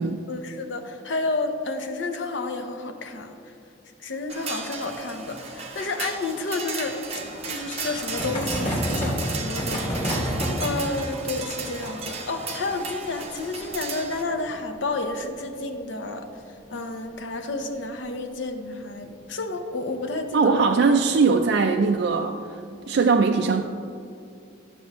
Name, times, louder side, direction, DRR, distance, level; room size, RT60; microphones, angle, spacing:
voice 1, 0.3-3.5 4.0-7.0 7.5-16.3 16.7-20.7, left 3 dB, 70° left, 5 dB, 0.8 m, -31 dB
sound 1, 4.3-14.2, right 4 dB, 35° right, 0.8 m, -35 dB
sound 2, 7.1-16.4 16.6-16.7 16.9-17.0 17.3-17.4 18.8-19.1 19.8-20.2, equal, 35° left, 2.0 m, -31 dB
voice 2, 20.3-22.6 22.9-23.6, right 4 dB, 60° right, 4 dB, 0.3 m, -20 dB
11.0 x 7.0 x 3.0 m, 2.5 s
head